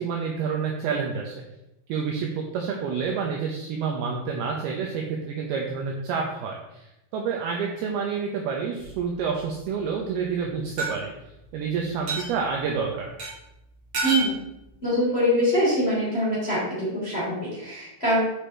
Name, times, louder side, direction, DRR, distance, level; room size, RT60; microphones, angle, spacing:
voice 1, 0.0-1.4 1.9-11.1 11.5-13.1, right 6 dB, 85° right, 0 dB, 2.2 m, -28 dB
sound 1, 8.8-9.4 10.8-10.9 12.1-12.3 13.2-13.3 13.9-14.3, right 1 dB, 40° right, 2.0 m, -28 dB
voice 2, 14.0-14.4 14.8-18.2, equal, 15° left, -8 dB, 2.6 m, -24 dB
8.9 x 5.2 x 4.4 m, 0.89 s
omnidirectional pair, 5.7 m